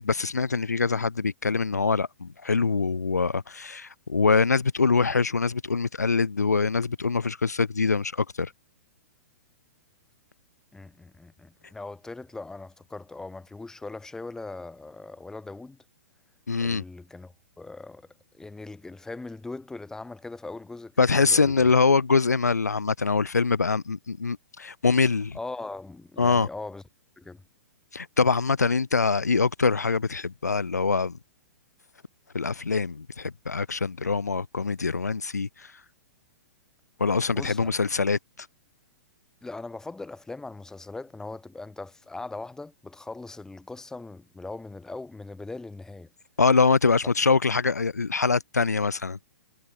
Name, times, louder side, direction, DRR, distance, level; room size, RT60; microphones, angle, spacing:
voice 1, 0.0-8.5 16.5-16.8 21.0-25.4 26.2-26.5 27.9-31.2 32.3-35.5 37.0-38.2 46.4-49.2, left 4 dB, 85° left, 0.7 m, -24 dB
voice 2, 10.7-15.8 16.6-18.1 18.3-21.7 25.3-26.8 27.2-27.4 37.3-37.7 39.4-46.1, left 3 dB, 5° left, 2.5 m, -40 dB
figure-of-eight pair, 110°, 9 cm